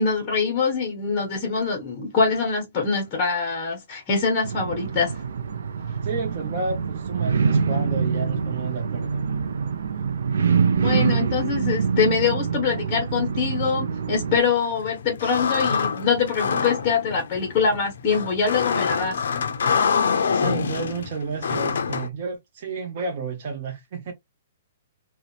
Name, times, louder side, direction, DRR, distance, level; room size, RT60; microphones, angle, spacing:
voice 1, 0.0-5.1 10.7-19.2, left 5 dB, 20° left, 0.7 m, -24 dB
sound 1, 4.4-14.4, right 6 dB, 85° right, 0.3 m, -25 dB
voice 2, 6.0-9.3 20.3-24.1, right 4 dB, 40° right, 0.6 m, -31 dB
sound 2, 14.3-22.1, left 6 dB, 75° left, 0.4 m, -26 dB
2.7 x 2.1 x 2.3 m
hypercardioid pair, 175°, 0 cm